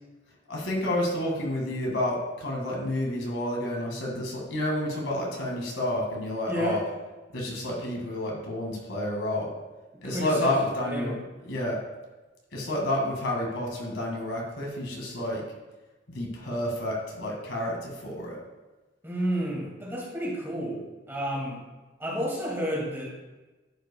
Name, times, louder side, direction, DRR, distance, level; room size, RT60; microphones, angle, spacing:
voice 1, 0.5-6.8 7.3-9.5 10.0-11.1 11.5-11.8 12.5-15.4 16.1-18.4, left 1 dB, 75° left, -1 dB, 1.9 m, -30 dB
voice 2, 6.5-6.8 10.0-10.3 10.7-11.2 19.0-21.6 22.0-23.1, equal, 15° right, -4 dB, 2.1 m, -31 dB
11.5 x 5.6 x 2.3 m, 1.2 s
head